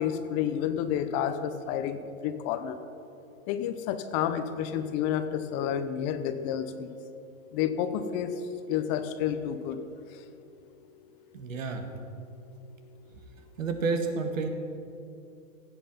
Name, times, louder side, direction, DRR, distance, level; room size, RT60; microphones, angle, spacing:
voice 1, 0.0-2.8 3.5-6.9 7.5-8.3 8.7-9.8, left 9 dB, 30° left, 9 dB, 0.8 m, -30 dB
voice 2, 11.3-11.8 13.6-14.5, right 4 dB, 70° right, 6 dB, 1.7 m, -30 dB
16.5 x 8.0 x 5.4 m, 2.7 s
hypercardioid pair, 120°, 42 cm